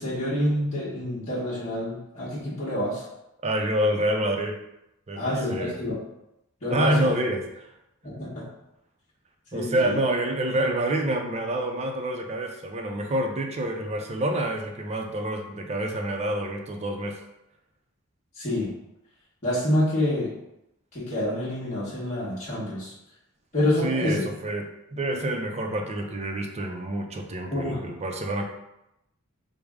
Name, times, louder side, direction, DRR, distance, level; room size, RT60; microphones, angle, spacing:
voice 1, 0.0-3.1 5.1-6.0 6.6-7.1 8.0-8.5 9.5-10.0 18.4-18.7 19.4-20.3 20.9-22.9 23.5-24.3 27.5-27.8, left 1 dB, 35° left, -9 dB, 1.0 m, -27 dB
voice 2, 3.4-4.6 5.1-5.8 6.7-7.4 9.5-17.2 23.8-24.6 24.9-28.4, right 1 dB, 30° right, 3 dB, 0.5 m, -27 dB
4.8 x 2.0 x 3.5 m, 0.85 s
head